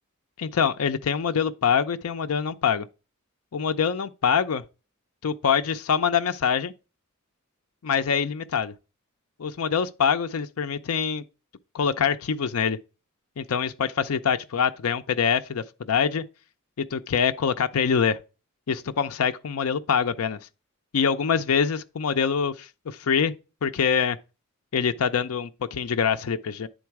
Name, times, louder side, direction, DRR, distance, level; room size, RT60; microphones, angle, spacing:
voice 1, 0.4-2.9 3.5-4.6 5.2-6.7 7.8-8.7 9.4-11.2 11.7-12.8 13.4-16.2 16.9-18.2 18.7-20.4 20.9-23.3 23.6-24.2 24.7-26.7, left 7 dB, 80° left, 0.5 m, -24 dB
9.4 x 3.9 x 4.6 m
head